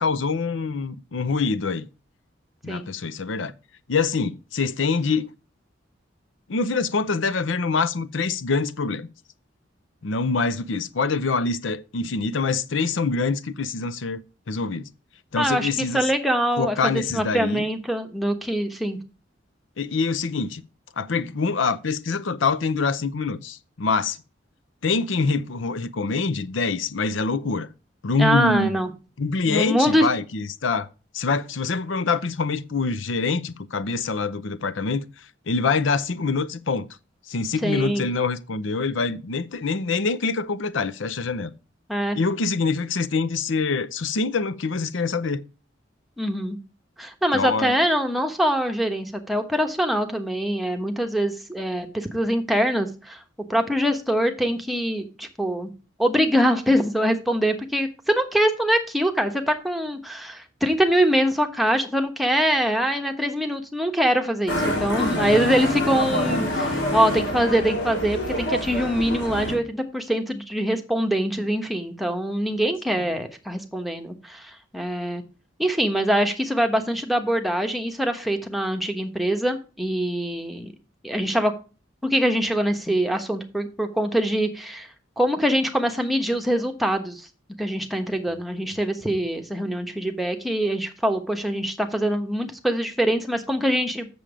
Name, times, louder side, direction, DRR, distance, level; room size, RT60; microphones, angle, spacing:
voice 1, 0.0-1.9 2.6-3.5 3.9-5.3 6.5-9.1 10.0-14.9 15.3-16.1 16.6-17.7 19.8-20.6 21.0-24.2 24.8-27.7 28.0-28.8 29.2-30.9 31.1-35.1 35.5-36.9 37.3-41.5 42.1-45.4 47.3-47.7, left 4 dB, 80° left, 0.6 m, -25 dB
voice 2, 15.4-19.0 28.2-28.9 29.5-30.1 37.6-38.0 41.9-42.2 46.2-46.6 47.0-53.2 53.5-55.7 56.0-74.5 74.7-75.2 75.6-80.7 81.0-81.5 82.0-84.9 85.2-87.2 87.6-94.1, equal, ahead, 1.1 m, -23 dB
Motorcycle, 64.5-69.5, equal, 65° left, 4.2 m, -26 dB
7.6 x 7.0 x 4.9 m
head